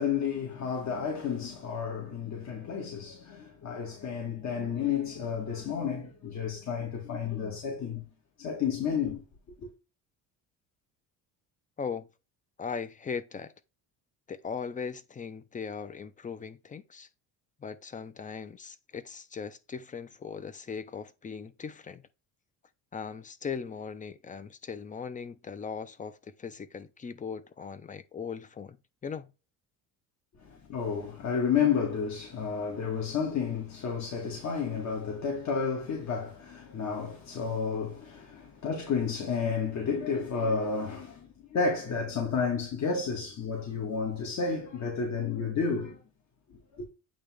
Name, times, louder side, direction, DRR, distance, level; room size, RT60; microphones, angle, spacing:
voice 1, 0.0-8.0 8.4-9.2 30.4-46.0 46.5-46.9, left 6 dB, 50° left, 1.9 m, -31 dB
voice 2, 12.6-13.5 14.3-17.1 17.6-22.0 22.9-28.8 29.0-29.3, left 6 dB, 20° left, 0.7 m, -39 dB
8.5 x 3.1 x 3.6 m
cardioid pair, 120°, 35 cm